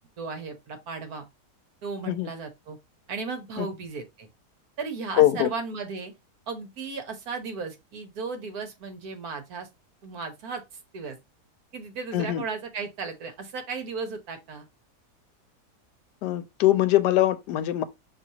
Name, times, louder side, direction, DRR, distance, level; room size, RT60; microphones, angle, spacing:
voice 1, 0.2-1.3 1.8-2.8 3.1-4.3 4.8-6.1 6.5-9.7 10.0-10.6 10.9-11.2 11.7-14.7, right 4 dB, 65° right, 1.4 m, -35 dB
voice 2, 5.1-5.5 12.1-12.4 16.2-17.8, left 14 dB, 85° left, 1.2 m, -22 dB
5.9 x 3.1 x 2.8 m
omnidirectional pair, 1.8 m